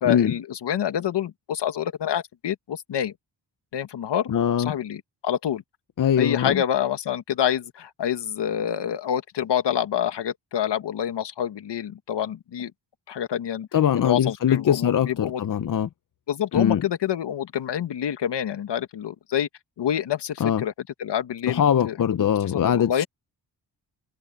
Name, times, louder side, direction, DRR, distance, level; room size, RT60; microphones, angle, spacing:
voice 1, 0.0-3.1 3.7-5.6 6.2-12.7 13.1-13.7 13.9-15.4 16.3-19.5 19.8-20.7 21.0-23.1, left 9 dB, 75° left, 1.8 m, -27 dB
voice 2, 4.3-4.7 6.0-6.6 13.7-15.9 16.5-16.8 20.4-20.6 21.5-23.0, left 9 dB, 50° left, 0.8 m, -22 dB
wide cardioid pair, 135°, 42 cm